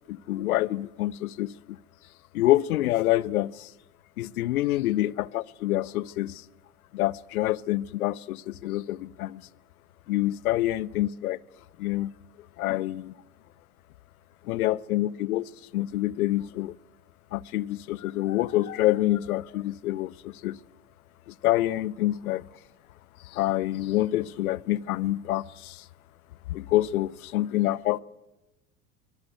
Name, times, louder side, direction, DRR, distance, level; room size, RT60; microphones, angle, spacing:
voice 1, 0.1-1.8 2.3-3.7 4.2-6.4 6.9-9.4 10.1-11.4 11.8-12.1 12.6-13.1 14.4-16.8 17.3-20.6 21.3-22.4 23.2-25.9 26.5-28.0, left 15 dB, 70° left, 0.9 m, -27 dB
23.5 x 21.0 x 8.1 m
hypercardioid pair, 80°, 45 cm